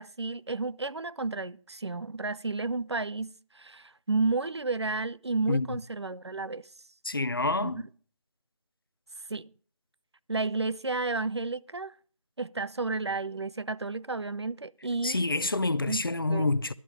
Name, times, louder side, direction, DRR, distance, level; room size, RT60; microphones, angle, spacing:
voice 1, 0.0-6.7 7.6-7.7 9.3-9.5 10.3-11.9 12.4-15.2 15.9-16.5, right 3 dB, 50° right, 0.5 m, -32 dB
voice 2, 5.5-5.8 7.0-7.8 15.0-16.7, left 2 dB, 40° left, 0.6 m, -27 dB
12.0 x 8.9 x 6.3 m
figure-of-eight pair, 165°, 17 cm